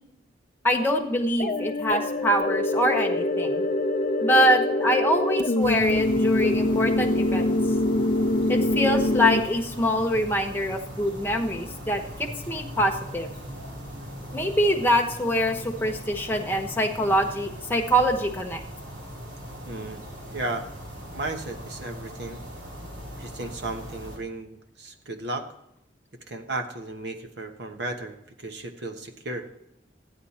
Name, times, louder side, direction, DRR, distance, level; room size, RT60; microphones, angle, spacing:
voice 1, 0.6-3.6 4.2-7.6 8.5-13.3 14.3-18.6, equal, 10° left, 2 dB, 1.1 m, -24 dB
sound 1, 1.4-9.4, left 1 dB, 45° left, 0.7 m, -24 dB
sound 2, 5.6-24.2, equal, 85° right, 3.1 m, -39 dB
voice 2, 19.6-20.0 20.3-20.7 21.1-22.4 23.2-25.5 26.3-29.4, right 2 dB, 70° right, 6 dB, 1.3 m, -34 dB
14.0 x 9.8 x 4.3 m, 0.80 s
head